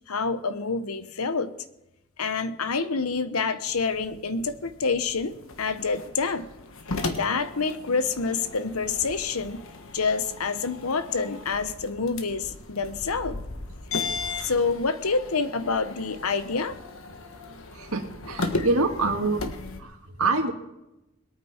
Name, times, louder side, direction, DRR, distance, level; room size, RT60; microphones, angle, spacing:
voice 1, 0.1-1.5 2.2-6.5 7.1-9.6 9.9-13.4 14.0-14.1 14.4-16.8 18.6-18.7, left 4 dB, 85° left, 12 dB, 1.0 m, -27 dB
sound 1, 3.7-19.8, left 3 dB, 70° left, 1.4 m, -36 dB
voice 2, 17.7-20.5, right 3 dB, 85° right, 4 dB, 2.0 m, -26 dB
21.5 x 9.1 x 4.5 m, 0.92 s
head